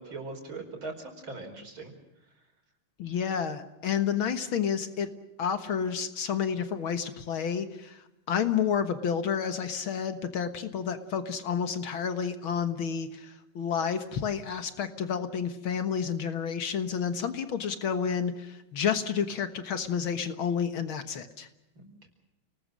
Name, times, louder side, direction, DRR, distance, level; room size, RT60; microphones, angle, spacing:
voice 1, 0.0-1.9 21.8-22.1, right 3 dB, 65° right, 4 dB, 5.7 m, -40 dB
voice 2, 3.0-5.1 5.4-21.5, left 7 dB, 70° left, 10 dB, 2.2 m, -30 dB
29.5 x 20.0 x 6.4 m, 0.91 s
omnidirectional pair, 2.4 m